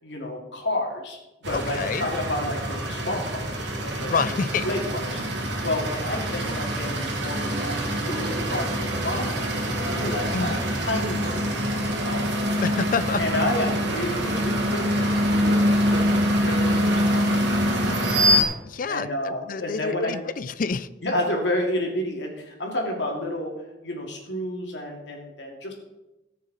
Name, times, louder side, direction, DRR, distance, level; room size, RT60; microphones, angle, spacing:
voice 1, 0.0-4.1 4.6-5.2 5.6-12.2 13.2-17.2 17.8-17.9 18.9-20.1 21.0-23.5 23.8-25.7, left 1 dB, 80° left, 0 dB, 2.6 m, -30 dB
sound 1, 1.4-18.4, equal, 80° right, 2.1 m, -25 dB
voice 2, 1.5-2.1 4.1-4.7 10.3-10.6 12.6-13.2 18.4-20.9, left 4 dB, 50° left, 15 dB, 0.5 m, -28 dB
Motorcycle, 6.2-9.9, right 1 dB, 40° right, 2.8 m, -41 dB
Electric guitar, 7.4-15.1, equal, 25° right, 4.6 m, -41 dB
18.0 x 6.5 x 4.2 m, 1.0 s
head